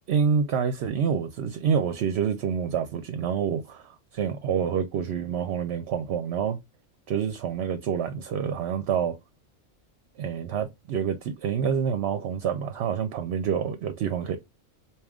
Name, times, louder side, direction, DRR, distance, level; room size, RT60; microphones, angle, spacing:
voice 1, 0.1-6.6 7.1-9.2 10.2-14.4, right 7 dB, 65° right, 0.8 m, -27 dB
4.9 x 2.8 x 2.3 m
omnidirectional pair, 1.3 m